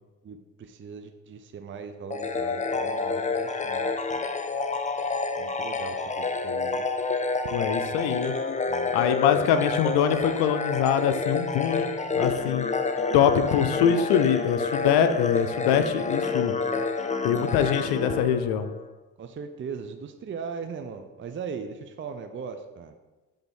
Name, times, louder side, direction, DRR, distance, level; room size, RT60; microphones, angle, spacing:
voice 1, 0.2-4.2 5.4-6.9 8.7-8.9 9.3-9.5 12.3-12.7 15.1-15.2 17.4-17.6 19.2-23.0, right 6 dB, 30° right, 8 dB, 0.5 m, -39 dB
sound 1, 2.1-18.9, left 4 dB, 20° left, 0.6 m, -28 dB
voice 2, 7.5-8.3 8.9-12.6 13.1-16.5 17.2-18.7, left 8 dB, 85° left, 10 dB, 0.5 m, -24 dB
5.9 x 3.5 x 5.3 m, 1.2 s
supercardioid pair, 60°, 38 cm